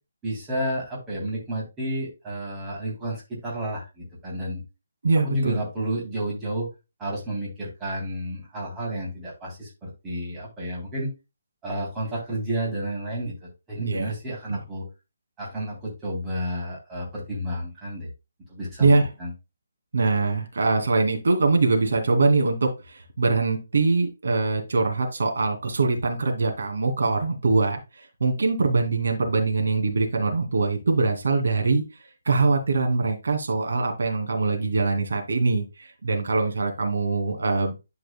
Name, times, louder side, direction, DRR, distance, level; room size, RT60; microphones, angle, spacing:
voice 1, 0.2-4.6 5.2-6.7 7.0-11.1 11.6-14.9 15.4-18.1 18.5-19.3, right 1 dB, 10° right, -6 dB, 3.2 m, -31 dB
voice 2, 5.0-5.6 13.8-14.1 14.5-14.6 18.8-19.0 19.9-31.8 32.2-37.7, right 3 dB, 70° right, 3 dB, 2.4 m, -23 dB
11.5 x 4.8 x 2.2 m, 0.26 s
hypercardioid pair, 170°, 0 cm